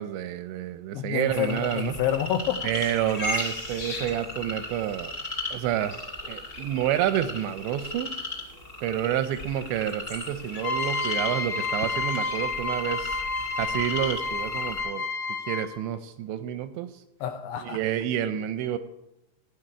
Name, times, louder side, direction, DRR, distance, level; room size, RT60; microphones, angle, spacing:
voice 1, 0.0-1.9 2.6-5.1 5.5-6.0 6.3-8.1 8.8-15.1 15.5-16.9 17.6-18.8, right 11 dB, 85° right, 11 dB, 2.5 m, -29 dB
voice 2, 0.9-2.6 17.2-17.8, left 10 dB, 85° left, 7 dB, 2.4 m, -28 dB
sound 1, 1.3-14.8, left 1 dB, 30° left, 1.9 m, -36 dB
sound 2, 10.6-15.9, left 4 dB, 50° left, 3.3 m, -30 dB
17.5 x 6.1 x 9.9 m, 0.93 s
omnidirectional pair, 5.6 m